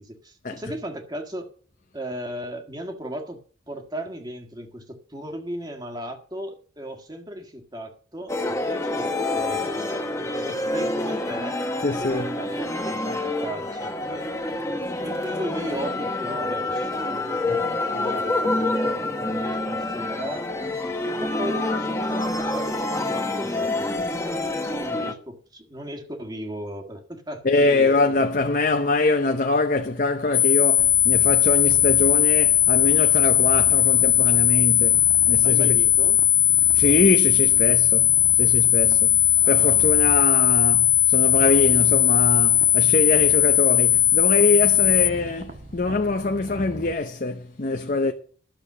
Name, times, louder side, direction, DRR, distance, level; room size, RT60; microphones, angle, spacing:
voice 1, 0.0-1.5 1.9-3.4 3.7-11.6 12.0-14.3 15.0-20.5 21.0-28.2 35.4-36.2 39.4-39.7, equal, 20° right, 1.6 m, -36 dB
sound 1, 8.3-25.1, left 2 dB, 15° left, 1.2 m, -27 dB
voice 2, 11.8-12.3 27.4-35.8 36.7-39.2 39.5-48.1, left 3 dB, 45° left, 0.8 m, -24 dB
sound 2, 30.3-45.1, left 12 dB, 65° left, 1.2 m, -18 dB
Purr, 30.8-46.9, right 1 dB, 45° right, 1.4 m, -39 dB
12.0 x 7.0 x 6.8 m
head